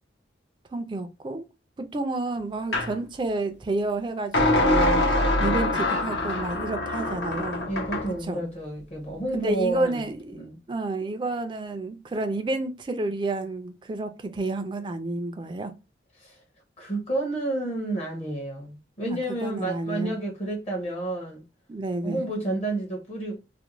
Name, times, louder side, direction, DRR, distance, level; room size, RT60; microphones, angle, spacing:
voice 1, 0.7-1.4 1.8-5.0 5.4-7.7 8.2-8.5 9.3-15.7 19.1-20.2 21.7-22.3, right 2 dB, 25° right, 0.3 m, -30 dB
sound 1, 2.7-2.9 4.3-8.1, left 1 dB, 75° left, 0.7 m, -24 dB
voice 2, 7.7-10.0 10.3-10.6 16.2-16.4 16.8-21.4 22.0-23.4, right 2 dB, 35° left, 0.7 m, -30 dB
2.5 x 2.1 x 2.8 m
head